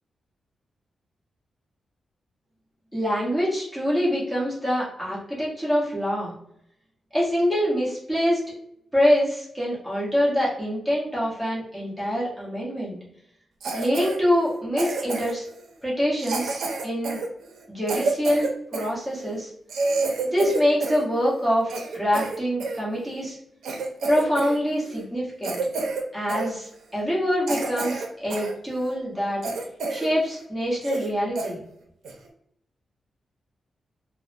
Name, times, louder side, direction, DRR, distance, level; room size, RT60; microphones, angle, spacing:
voice 1, 2.9-6.3 7.1-8.5 8.9-13.0 13.7-15.4 15.8-17.2 17.7-19.5 20.2-23.4 24.1-25.6 26.1-29.4 29.9-31.6, equal, ahead, -7 dB, 1.3 m, -25 dB
Cough, 13.6-14.2 14.8-15.5 16.2-18.9 19.4-19.5 19.7-21.1 21.4-22.8 23.3-23.4 23.6-24.6 24.8-25.0 25.4-26.0 26.3-26.5 27.0-27.1 27.5-28.5 28.9-29.0 29.4-30.1 30.4-30.5 30.8-31.1 31.4-31.5 32.0-32.3, right 3 dB, 90° right, 0.5 m, -29 dB
3.4 x 2.1 x 3.1 m, 0.73 s
wide cardioid pair, 140°, 0 cm